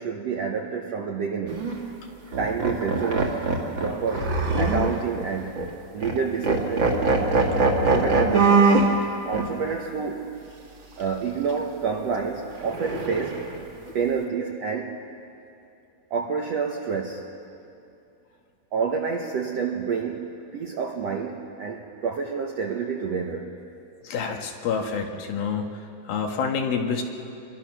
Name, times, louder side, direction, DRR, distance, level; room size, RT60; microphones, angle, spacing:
voice 1, 0.0-1.6 2.4-3.4 3.8-5.6 5.9-7.0 7.9-8.8 9.2-10.3 11.0-13.4 13.9-15.0 16.1-17.2 18.7-20.2 20.5-23.5, right 6 dB, 65° right, 1 dB, 1.6 m, -28 dB
sound 1, 1.5-1.7 2.3-5.2 5.6-5.7 6.0-6.2 6.4-8.9 9.3-9.5 12.6-13.6, right 3 dB, 40° right, 2.1 m, -22 dB
voice 2, 24.0-25.8 26.1-27.0, left 6 dB, 75° left, 3 dB, 3.3 m, -27 dB
26.5 x 23.0 x 6.1 m, 2.6 s
omnidirectional pair, 4.3 m